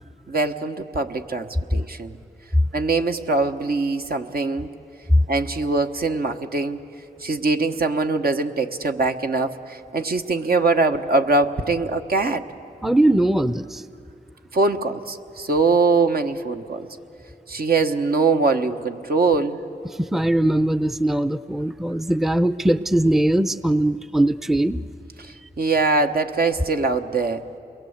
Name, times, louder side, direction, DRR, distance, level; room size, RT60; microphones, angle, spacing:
voice 1, 0.3-2.2 2.7-4.7 5.3-6.8 7.2-12.4 14.5-16.9 17.5-19.6 25.2-27.5, right 3 dB, 60° right, 5 dB, 1.3 m, -22 dB
voice 2, 12.8-13.8 19.8-24.8, right 1 dB, ahead, 14 dB, 0.6 m, -20 dB
28.5 x 22.0 x 8.1 m, 2.8 s
cardioid pair, 55°, 17 cm